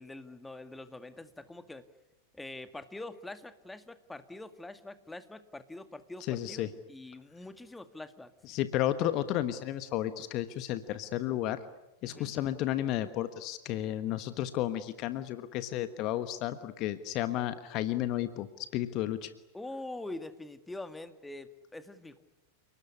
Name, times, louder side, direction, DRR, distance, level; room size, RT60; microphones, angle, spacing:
voice 1, 0.0-1.9 2.3-8.3 12.0-12.4 19.5-22.2, left 2 dB, 5° left, 10 dB, 2.0 m, -44 dB
voice 2, 6.3-6.7 8.5-11.6 12.0-19.3, left 13 dB, 40° left, 12 dB, 1.3 m, -32 dB
30.0 x 20.0 x 9.7 m, 0.96 s
figure-of-eight pair, 90°, 0 cm